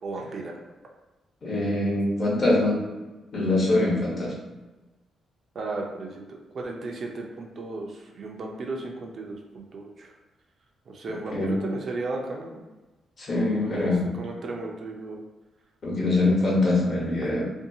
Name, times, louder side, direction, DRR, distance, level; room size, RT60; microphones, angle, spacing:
voice 1, 0.0-0.6 5.5-10.1 10.9-12.6 13.6-15.2, right 3 dB, 50° right, 0 dB, 0.5 m, -35 dB
voice 2, 1.4-2.8 3.3-4.3 11.3-11.5 13.2-14.2 15.8-17.4, left 2 dB, 45° left, -4 dB, 1.0 m, -23 dB
2.6 x 2.3 x 2.7 m, 1.1 s
cardioid pair, 100°, 0 cm